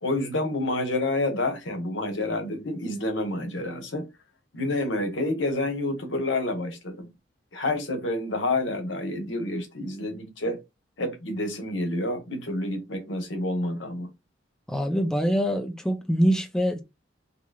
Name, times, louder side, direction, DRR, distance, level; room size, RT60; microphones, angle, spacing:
voice 1, 0.0-4.1 4.5-7.1 7.5-10.6 11.0-14.1, left 2 dB, 75° left, 1.0 m, -28 dB
voice 2, 14.7-16.8, equal, 5° left, 0.5 m, -24 dB
3.8 x 3.0 x 2.3 m
head